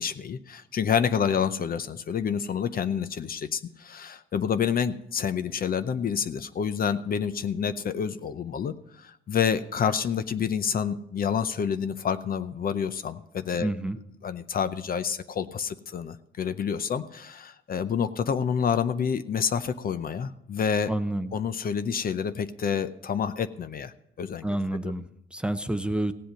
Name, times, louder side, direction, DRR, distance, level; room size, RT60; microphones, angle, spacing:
voice 1, 0.0-13.7 14.2-20.9 21.3-24.5 24.8-24.9, left 7 dB, 45° left, 12 dB, 0.6 m, -28 dB
voice 2, 13.6-14.0 20.9-21.3 24.4-26.1, right 1 dB, 5° right, 11 dB, 0.6 m, -29 dB
16.5 x 7.8 x 5.2 m, 0.79 s
cardioid pair, 90°, 20 cm